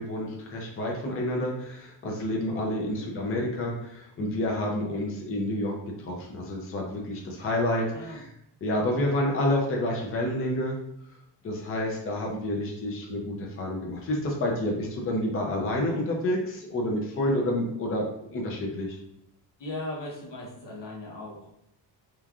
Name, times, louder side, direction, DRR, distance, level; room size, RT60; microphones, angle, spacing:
voice 1, 0.0-8.2 8.6-10.8 11.4-19.0, left 1 dB, 30° left, -1 dB, 0.5 m, -29 dB
voice 2, 7.9-8.2 8.8-9.1 19.6-21.6, left 2 dB, 80° left, -3 dB, 1.0 m, -38 dB
3.0 x 2.4 x 2.3 m, 0.76 s
cardioid pair, 130°, 42 cm